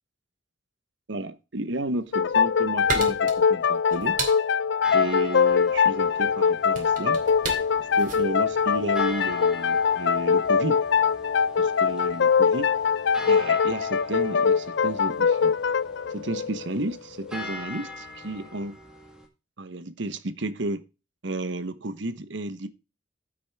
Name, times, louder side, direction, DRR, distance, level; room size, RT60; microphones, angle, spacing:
voice 1, 1.1-4.2 4.9-7.2 7.8-10.8 11.6-12.7 13.3-15.6 16.1-18.8 19.6-20.8 21.2-22.7, right 2 dB, 70° right, 12 dB, 1.1 m, -32 dB
sound 1, 2.0-9.4, right 4 dB, 45° right, 2.5 m, -35 dB
sound 2, 2.1-17.5, left 6 dB, 70° left, 0.5 m, -23 dB
sound 3, 4.8-19.3, left 2 dB, 5° right, 1.8 m, -42 dB
14.5 x 6.2 x 3.5 m, 0.30 s
head